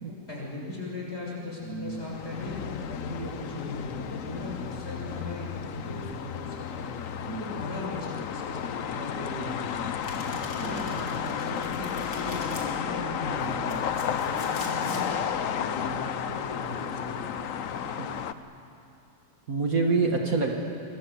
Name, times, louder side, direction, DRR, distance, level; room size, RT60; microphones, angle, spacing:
voice 1, 0.1-6.9 7.4-9.7 10.6-17.2, left 1 dB, 35° left, -3 dB, 7.0 m, -38 dB
voice 2, 1.6-2.0 5.8-6.0 7.3-7.4 10.3-11.0 13.6-13.8 19.5-20.6, right 4 dB, 50° right, 1 dB, 2.2 m, -28 dB
sound 1, 1.9-18.3, left 8 dB, 55° left, 1.0 m, -33 dB
Domestic sounds home sounds, 10.0-12.7 13.4-15.1, left 2 dB, 80° left, 4.1 m, -42 dB
26.5 x 22.0 x 7.8 m, 2.8 s
omnidirectional pair, 1.9 m